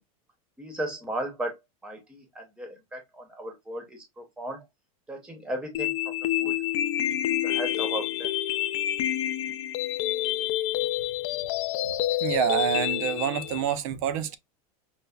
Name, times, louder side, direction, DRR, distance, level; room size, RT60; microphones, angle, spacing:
voice 1, 0.6-4.7 5.1-7.1 7.4-8.3, right 1 dB, 5° right, 0.7 m, -36 dB
sound 1, 5.7-13.7, left 13 dB, 55° left, 0.4 m, -28 dB
voice 2, 12.2-14.4, right 9 dB, 65° right, 0.5 m, -27 dB
5.4 x 2.1 x 2.2 m
supercardioid pair, 160°, 18 cm